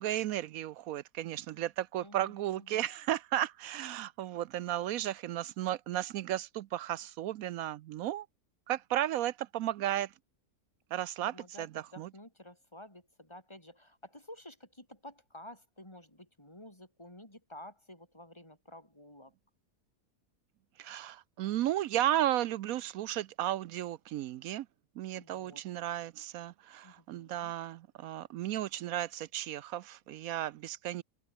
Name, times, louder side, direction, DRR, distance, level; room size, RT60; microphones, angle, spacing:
voice 1, 0.0-8.3 8.7-10.1 10.9-11.3 11.6-11.7 12.0-12.1 20.8-24.7 25.0-31.0, right 13 dB, 75° right, 1.0 m, -34 dB
voice 2, 1.9-2.9 11.2-19.3 25.1-25.6 26.8-27.5, left 1 dB, 15° left, 6.1 m, -52 dB
open air
omnidirectional pair, 1.6 m